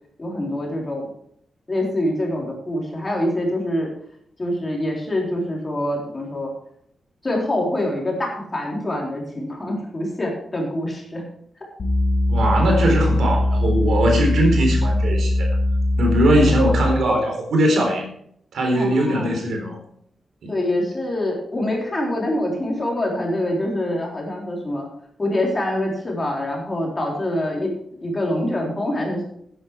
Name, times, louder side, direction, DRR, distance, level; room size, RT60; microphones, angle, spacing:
voice 1, 0.2-1.0 1.7-3.9 4.4-6.5 7.2-11.2 18.7-19.3 20.5-24.9 25.2-27.7 28.0-29.2, left 1 dB, 20° left, -1 dB, 3.8 m, -25 dB
sound 1, 11.8-17.1, left 1 dB, 35° left, 4.7 m, -20 dB
voice 2, 12.3-15.5 16.0-18.1 18.5-19.8 20.4-20.6, right 1 dB, 75° right, 2 dB, 4.0 m, -20 dB
12.0 x 10.0 x 4.8 m, 0.68 s
wide cardioid pair, 150°, 0 cm